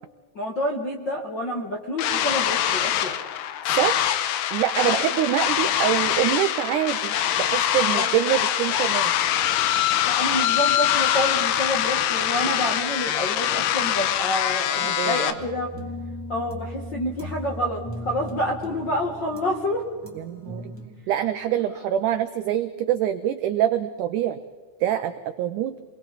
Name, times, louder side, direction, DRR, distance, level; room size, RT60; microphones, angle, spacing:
voice 1, 0.3-3.2 4.8-5.1 7.9-8.2 10.0-15.7 16.3-19.8 21.7-21.8, left 1 dB, 55° left, 0 dB, 1.2 m, -28 dB
sound 1, 2.0-15.3, left 11 dB, 90° left, 2.9 m, -24 dB
voice 2, 3.7-4.1 4.5-9.1 14.8-15.2 20.2-20.7 21.1-24.4 24.8-25.1 25.4-25.8, right 11 dB, 80° right, 9 dB, 1.8 m, -25 dB
sound 2, 15.4-20.9, equal, 5° left, 2.3 m, -37 dB
30.0 x 22.0 x 4.1 m, 1.5 s
omnidirectional pair, 4.5 m